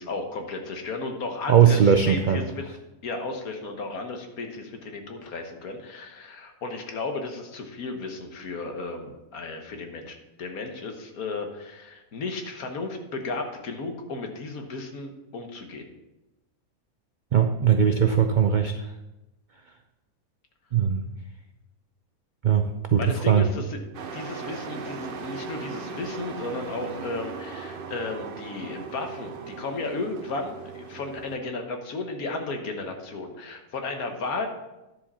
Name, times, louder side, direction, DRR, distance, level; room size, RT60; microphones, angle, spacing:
voice 1, 0.0-2.7 3.0-15.9 23.0-23.8 24.1-34.5, left 3 dB, 80° left, 4 dB, 1.6 m, -34 dB
voice 2, 1.5-2.4 17.3-18.7 20.7-21.0 22.4-23.5, right 8 dB, 75° right, 6 dB, 0.4 m, -20 dB
Truck, 23.9-31.4, right 5 dB, 50° right, 0.7 m, -38 dB
10.0 x 7.4 x 4.2 m, 1.0 s
omnidirectional pair, 1.5 m